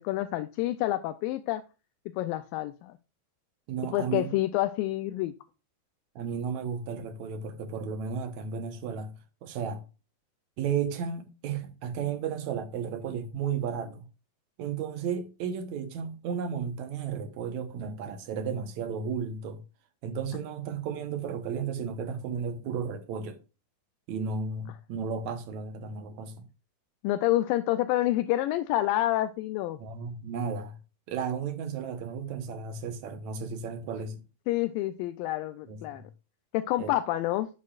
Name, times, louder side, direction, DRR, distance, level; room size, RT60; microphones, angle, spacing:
voice 1, 0.0-1.6 2.2-2.9 3.9-5.3 27.0-29.8 34.5-36.0 36.5-37.5, left 15 dB, 85° left, 2.2 m, -28 dB
voice 2, 3.7-4.3 6.2-9.8 10.6-14.1 14.6-19.6 20.0-23.4 24.1-26.5 29.8-30.8 31.1-34.2 35.7-36.1 36.8-36.9, right 6 dB, 65° right, 2.1 m, -34 dB
10.5 x 8.6 x 2.4 m
omnidirectional pair, 4.0 m